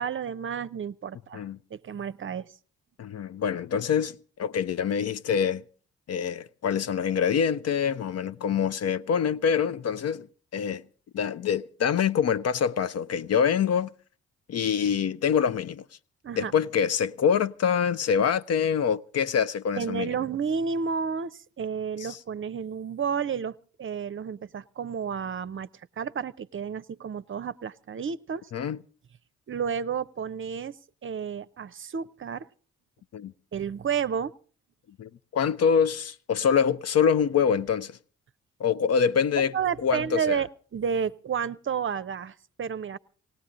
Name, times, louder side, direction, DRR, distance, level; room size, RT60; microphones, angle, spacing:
voice 1, 0.0-1.4 1.7-2.5 16.2-16.5 19.8-25.7 26.0-28.5 29.5-30.8 31.0-32.5 33.5-34.3 39.5-43.0, right 7 dB, 40° right, 0.7 m, -31 dB
voice 2, 3.0-5.6 6.1-10.3 10.5-10.8 11.1-13.9 14.5-15.8 16.4-20.2 22.0-22.2 28.5-28.8 33.1-33.3 35.0-38.0 38.6-39.5 39.8-40.4, left 7 dB, 50° left, 0.7 m, -25 dB
18.5 x 18.0 x 3.8 m
hypercardioid pair, 45°, 32 cm